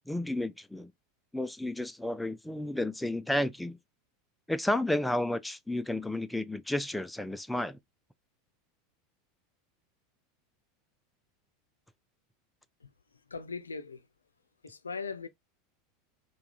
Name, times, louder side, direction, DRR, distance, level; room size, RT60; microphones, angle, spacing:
voice 1, 0.1-0.9 1.3-3.8 4.5-7.8, left 1 dB, 5° left, 0.4 m, -32 dB
voice 2, 13.3-14.0 14.6-15.3, left 4 dB, 85° left, 0.4 m, -39 dB
4.6 x 2.3 x 2.3 m
figure-of-eight pair, 85°, 0 cm